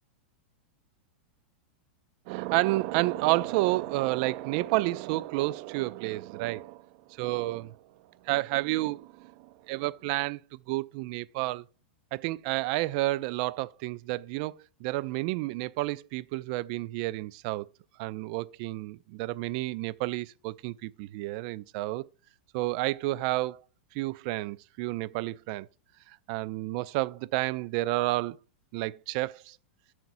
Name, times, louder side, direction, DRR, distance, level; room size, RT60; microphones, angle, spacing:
voice 1, 2.3-7.8 8.2-11.6 12.1-14.5 14.8-17.7 18.0-22.0 22.5-23.6 23.9-25.7 26.1-28.4 28.7-29.6, right 19 dB, 50° right, 0.4 m, -30 dB
9.2 x 5.8 x 2.6 m
hypercardioid pair, 115°, 6 cm